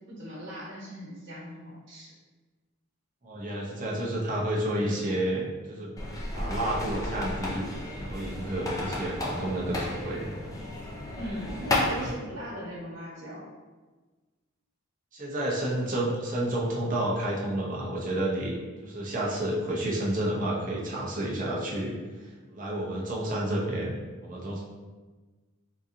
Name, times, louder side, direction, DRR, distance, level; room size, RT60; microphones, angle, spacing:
voice 1, 0.1-2.1 4.7-5.0 11.2-13.4, equal, 60° right, -10 dB, 1.2 m, -38 dB
voice 2, 3.2-5.9 6.3-10.3 15.1-24.0 24.2-24.6, right 1 dB, 40° right, -4 dB, 0.7 m, -30 dB
sound 1, 6.0-12.1, left 1 dB, 15° left, 0.4 m, -33 dB
3.8 x 2.8 x 2.6 m, 1.3 s
head